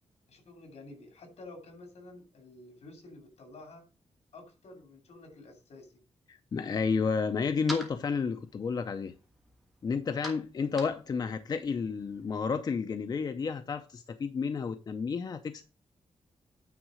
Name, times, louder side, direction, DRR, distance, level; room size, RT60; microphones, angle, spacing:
voice 1, 0.3-3.8 4.3-5.9, left 2 dB, 80° left, 2.7 m, -50 dB
voice 2, 6.3-9.1 9.8-15.6, left 5 dB, 40° left, 0.5 m, -31 dB
sound 1, 6.7-12.5, equal, ahead, 1.5 m, -48 dB
9.3 x 3.7 x 6.3 m
wide cardioid pair, 180°, 11 cm